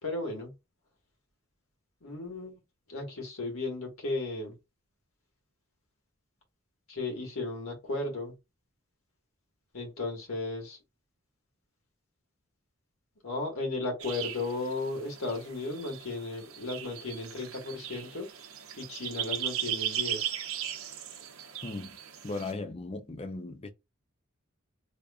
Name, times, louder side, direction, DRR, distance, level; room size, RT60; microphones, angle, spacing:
voice 1, 0.0-0.5 2.0-2.6 2.9-4.5 6.9-8.3 9.7-10.8 13.2-18.3 18.8-20.3, left 2 dB, 80° left, 1.8 m, -35 dB
sound 1, 14.0-22.5, right 10 dB, 80° right, 0.7 m, -38 dB
voice 2, 21.6-22.0 22.2-23.7, left 3 dB, 30° left, 0.5 m, -37 dB
3.4 x 2.6 x 3.5 m
head